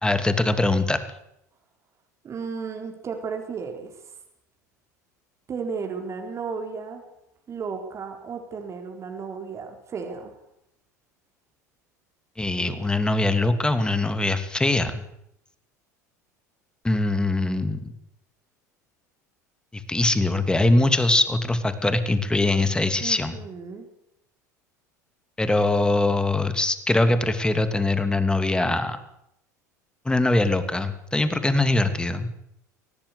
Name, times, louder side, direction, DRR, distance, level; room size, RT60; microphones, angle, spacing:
voice 1, 0.0-1.0 12.4-15.0 16.8-17.9 19.7-23.3 25.4-29.0 30.0-32.3, left 2 dB, 10° left, 10 dB, 2.8 m, -22 dB
voice 2, 2.2-3.9 5.5-7.0 7.5-10.3 23.0-23.9, right 5 dB, 30° right, 4 dB, 4.2 m, -34 dB
24.5 x 18.0 x 8.4 m, 0.78 s
figure-of-eight pair, 75°, 9 cm